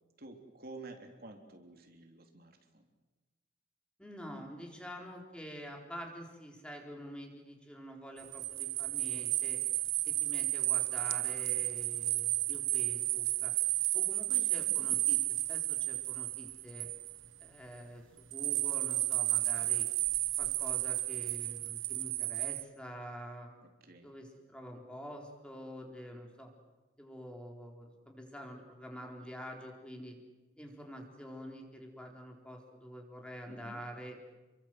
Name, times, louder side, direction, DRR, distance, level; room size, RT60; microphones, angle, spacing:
voice 1, 0.2-2.9 14.7-15.0 23.8-24.1 33.5-33.8, right 2 dB, 50° right, 3 dB, 3.4 m, -51 dB
voice 2, 4.0-9.6 10.0-13.5 13.9-16.9 17.4-18.0 18.3-19.9 20.4-23.5 24.0-26.5 27.0-30.1 30.6-34.2, equal, 5° left, 1 dB, 4.3 m, -47 dB
sound 1, 8.2-17.4 18.3-22.6, right 17 dB, 90° right, 1.1 m, -32 dB
30.0 x 24.0 x 7.9 m, 1.2 s
head